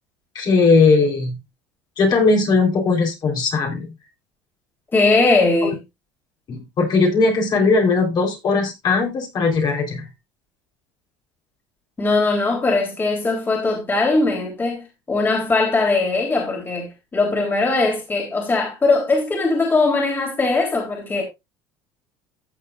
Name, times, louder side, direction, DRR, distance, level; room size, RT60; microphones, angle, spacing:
voice 1, 0.3-1.3 2.0-3.9 5.6-5.7 6.5-10.1, left 4 dB, 40° left, 4.0 m, -18 dB
voice 2, 4.9-5.8 12.0-21.2, left 3 dB, 20° left, 3.5 m, -20 dB
14.5 x 7.5 x 2.5 m
cardioid pair, 125°, 11 cm